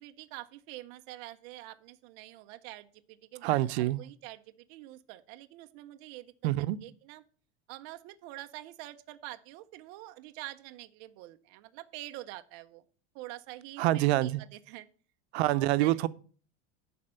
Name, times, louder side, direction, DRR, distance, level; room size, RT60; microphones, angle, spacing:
voice 1, 0.0-7.2 7.7-12.8 13.1-14.9 15.5-16.0, right 16 dB, 35° right, 0.5 m, -46 dB
voice 2, 3.4-4.0 6.4-6.8 13.8-14.4 15.3-16.1, right 16 dB, 75° right, 0.7 m, -26 dB
11.0 x 4.3 x 7.6 m
supercardioid pair, 180°, 33 cm